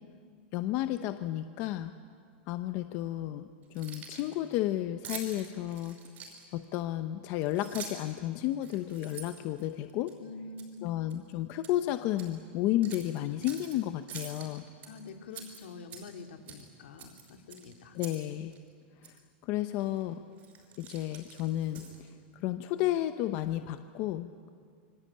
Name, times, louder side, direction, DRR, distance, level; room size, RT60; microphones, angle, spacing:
voice 1, 0.5-1.9 2.5-3.5 3.7-6.0 6.5-10.1 10.8-14.7 17.9-18.5 19.4-20.2 20.8-21.8 22.4-24.5, left 13 dB, 35° left, 9 dB, 0.8 m, -32 dB
Keys jangling, 3.6-4.3 5.0-6.6 7.4-8.1 8.6-10.1 10.6-10.8 11.1-11.8 12.1-12.3 12.8-13.7 14.1-14.9 15.3-16.2 16.5-16.7 17.0-18.3 18.5-18.6 19.0-19.2 19.8-20.0 20.4-22.1, right 6 dB, 25° right, 5.3 m, -46 dB
voice 2, 10.2-11.2 14.8-18.0, left 3 dB, 70° left, 5 dB, 2.6 m, -46 dB
26.5 x 24.0 x 8.7 m, 2.1 s
supercardioid pair, 170°, 6 cm